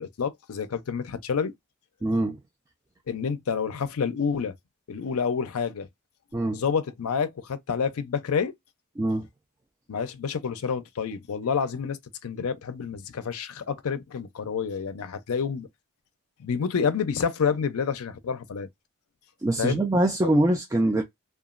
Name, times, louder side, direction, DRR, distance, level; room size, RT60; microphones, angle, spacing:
voice 1, 0.0-1.5 3.1-4.5 4.9-5.9 6.5-8.5 9.9-15.7 16.4-18.7 19.6-19.8, left 6 dB, 80° left, 0.5 m, -28 dB
voice 2, 2.0-2.4 6.3-6.6 9.0-9.3 19.4-21.0, right 1 dB, 15° right, 0.3 m, -23 dB
2.9 x 2.3 x 2.4 m
head